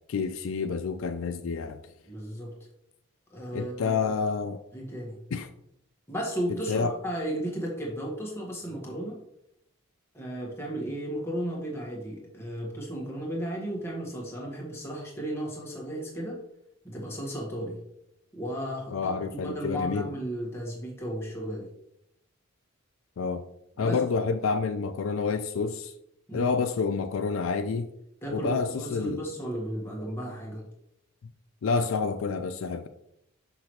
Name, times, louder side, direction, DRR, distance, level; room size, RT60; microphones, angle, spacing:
voice 1, 0.1-1.8 3.5-4.6 5.3-5.5 6.7-7.0 18.9-20.1 23.2-23.4 23.8-25.9 26.3-27.9 28.3-29.2 31.6-32.9, left 5 dB, 65° left, 0.4 m, -28 dB
voice 2, 2.1-2.5 3.3-4.1 4.7-5.2 6.1-9.2 10.1-16.4 16.8-17.8 18.3-21.7 23.8-24.0 26.3-26.5 28.2-30.6, right 1 dB, 10° left, 1.6 m, -34 dB
6.1 x 6.0 x 3.1 m
head